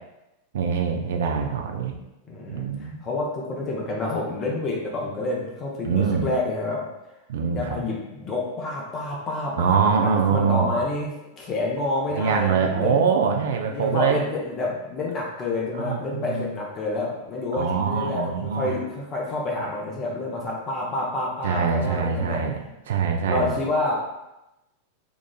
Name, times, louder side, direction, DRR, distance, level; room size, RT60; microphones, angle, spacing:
voice 1, 0.5-2.0 2.5-3.0 5.8-6.3 7.3-7.8 9.6-10.7 12.2-14.2 15.8-16.5 17.6-18.7 21.4-22.6 22.9-23.5, right 6 dB, 60° right, 4 dB, 0.3 m, -23 dB
voice 2, 2.3-6.9 7.5-13.1 13.7-22.4 23.3-23.9, left 2 dB, 30° left, -2 dB, 0.7 m, -28 dB
3.9 x 2.4 x 2.3 m, 0.93 s
figure-of-eight pair, 90°, 0 cm